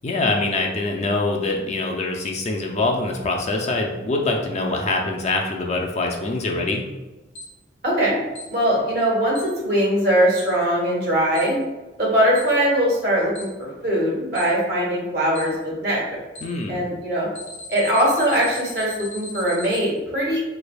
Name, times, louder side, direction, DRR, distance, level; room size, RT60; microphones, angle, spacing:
voice 1, 0.0-6.8 16.4-16.8, left 2 dB, 35° left, 1 dB, 0.4 m, -24 dB
Alarm, 7.4-7.5 8.4-8.5 9.4-9.5 10.4-10.5 11.4-11.5 12.4-12.5 13.4-13.5 14.4-14.5 15.4-15.5 16.4-16.5 17.4-19.8, left 2 dB, 90° left, 1.0 m, -37 dB
voice 2, 7.8-8.2 8.5-11.6 12.0-16.2 16.7-17.3 17.7-20.4, equal, 55° right, -4 dB, 1.2 m, -21 dB
3.4 x 3.2 x 2.3 m, 1.1 s
head